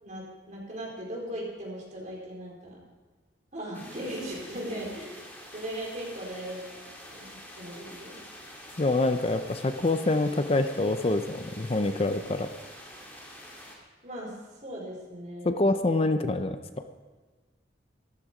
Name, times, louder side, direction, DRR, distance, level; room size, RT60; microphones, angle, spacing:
voice 1, 0.0-2.8 3.5-5.2 5.5-6.6 7.1-8.2 14.0-15.6, right 1 dB, 45° right, -3 dB, 4.5 m, -38 dB
sound 1, 3.7-13.7, equal, 10° left, 2.4 m, -47 dB
voice 2, 8.8-12.5 15.4-16.6, left 2 dB, 35° left, 9 dB, 0.6 m, -26 dB
14.0 x 13.0 x 5.0 m, 1.4 s
head